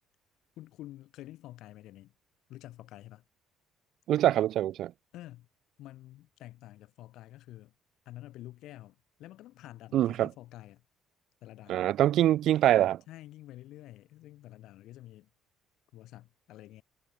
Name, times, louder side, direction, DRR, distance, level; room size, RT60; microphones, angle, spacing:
voice 1, 0.6-2.1 2.5-3.2 5.1-5.5 5.8-7.7 8.0-10.8 11.4-11.9 13.1-15.3 15.9-16.8, left 15 dB, 75° left, 6.3 m, -48 dB
voice 2, 4.1-4.9 9.9-10.3 11.7-13.0, right 12 dB, 65° right, 0.3 m, -24 dB
cardioid pair, 120°, 0 cm